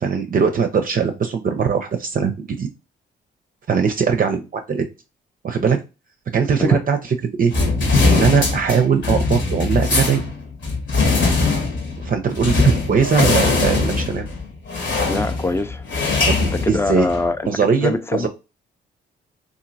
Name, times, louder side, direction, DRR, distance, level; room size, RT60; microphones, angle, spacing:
voice 1, 0.0-2.7 3.7-4.9 5.4-5.8 6.3-7.5 8.0-10.2 12.0-14.3 16.3-17.1 17.5-18.3, right 6 dB, 45° right, 0.5 m, -20 dB
sound 1, 7.5-17.3, left 3 dB, 60° left, 1.2 m, -21 dB
voice 2, 15.0-15.9 16.5-17.4 17.8-18.3, left 2 dB, 10° left, 0.5 m, -23 dB
2.9 x 2.5 x 2.6 m
supercardioid pair, 50°, 21 cm